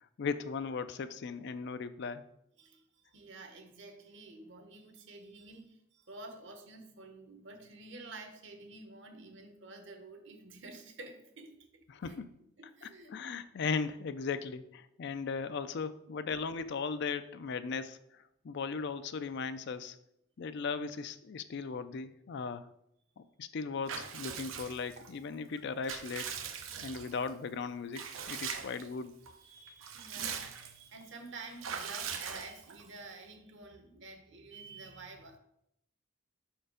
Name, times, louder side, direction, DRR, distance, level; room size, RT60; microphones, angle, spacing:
voice 1, 0.2-2.3 11.9-12.4 12.8-20.0 20.4-22.7 23.4-26.3 26.8-29.2, left 5 dB, 60° left, 12 dB, 0.4 m, -37 dB
voice 2, 2.6-12.2 12.6-13.2 16.2-16.3 29.4-35.4, right 3 dB, 65° right, 5 dB, 1.1 m, -50 dB
Water / Bathtub (filling or washing) / Liquid, 23.9-25.1 25.6-27.3 27.9-28.9 29.3-29.4 29.7-30.9 31.6-32.9, right 7 dB, 85° right, 0.7 m, -41 dB
5.7 x 4.5 x 5.0 m, 0.76 s
head